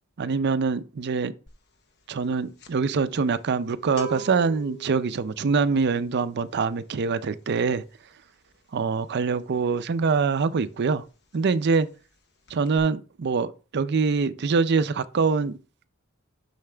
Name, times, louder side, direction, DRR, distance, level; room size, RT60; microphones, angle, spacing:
voice 1, 0.2-1.3 2.1-7.8 8.7-11.0 11.3-11.9 12.5-15.6, right 5 dB, 55° right, 0.5 m, -24 dB
sound 1, 1.5-1.7 2.0-10.6 10.8-11.1 11.3-12.2 12.4-12.8, right 3 dB, 55° left, 0.9 m, -43 dB
7.2 x 5.7 x 3.3 m
head